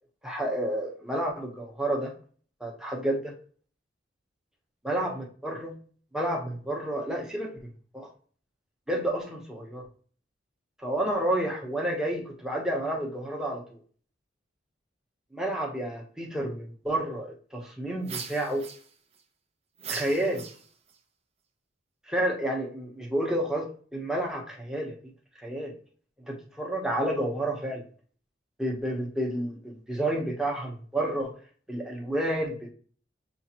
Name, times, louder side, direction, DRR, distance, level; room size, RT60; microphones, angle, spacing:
voice 1, 0.2-2.1 2.6-3.3 4.8-5.7 6.1-8.1 8.9-9.9 10.8-13.8 15.3-18.7 19.9-20.4 22.1-25.0 25.4-25.8 26.3-27.8 28.6-31.3 31.7-32.7, right 1 dB, 5° right, 0 dB, 0.9 m, -30 dB
sound 1, 18.0-19.2 19.8-21.0, right 6 dB, 35° right, 0.5 m, -39 dB
7.0 x 2.5 x 2.9 m, 0.44 s
head